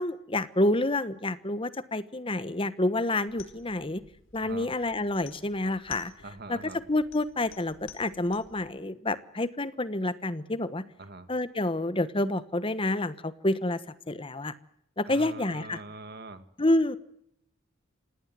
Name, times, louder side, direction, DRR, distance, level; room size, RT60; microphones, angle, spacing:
voice 1, 0.0-4.0 4.3-6.1 6.5-6.6 6.9-10.8 11.3-13.8 14.1-14.5 15.0-15.8 16.6-17.0, left 1 dB, 25° left, 14 dB, 1.2 m, -28 dB
sound 1, 3.3-8.7, left 7 dB, 70° left, 4.7 m, -52 dB
voice 2, 4.4-4.7 6.2-6.8 11.0-11.3 15.1-16.5, right 2 dB, 50° right, 10 dB, 2.1 m, -43 dB
27.0 x 18.5 x 7.6 m, 0.76 s
head